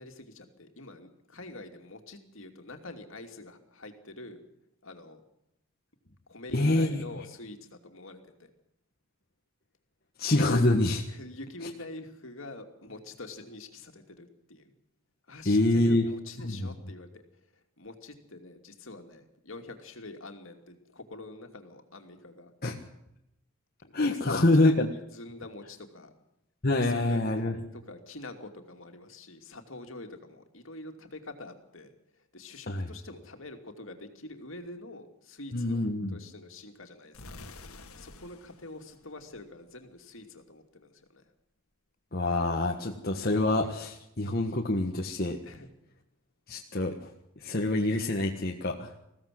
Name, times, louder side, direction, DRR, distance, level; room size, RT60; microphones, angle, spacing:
voice 1, 0.0-4.4 4.8-5.2 6.3-8.5 11.1-14.7 15.3-22.5 23.8-26.1 26.8-27.2 27.7-31.9 32.3-35.8 36.1-37.4 38.0-41.3 45.4-45.7, left 2 dB, 60° left, 5 dB, 2.7 m, -45 dB
voice 2, 6.5-7.0 10.2-11.0 15.4-16.1 16.4-16.7 22.6-22.8 23.9-24.9 26.6-27.6 32.7-32.9 35.5-36.2 42.1-45.4 46.5-47.1 47.4-48.9, left 2 dB, 45° left, 1 dB, 1.5 m, -26 dB
sound 1, 37.1-40.0, left 2 dB, 80° left, 2.2 m, -49 dB
21.0 x 16.0 x 7.7 m, 0.84 s
head